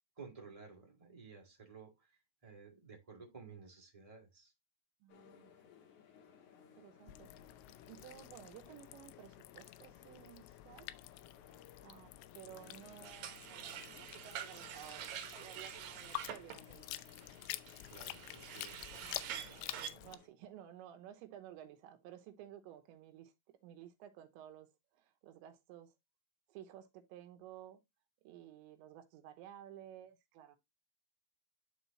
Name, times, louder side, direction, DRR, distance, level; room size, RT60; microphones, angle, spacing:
voice 1, 0.1-2.1 2.4-4.5 17.9-18.9, right 4 dB, 30° right, 0.6 m, -54 dB
voice 2, 5.0-5.5 6.7-7.3 7.9-10.9 11.8-16.9 19.0-25.9 26.5-27.8 28.2-30.6, right 11 dB, 85° right, 3.3 m, -55 dB
sound 1, 5.1-20.3, left 7 dB, 60° left, 2.3 m, -62 dB
sound 2, 7.1-20.2, left 17 dB, 80° left, 2.7 m, -49 dB
sound 3, 13.0-19.9, right 10 dB, 70° right, 2.3 m, -47 dB
11.5 x 4.0 x 2.9 m
omnidirectional pair, 5.2 m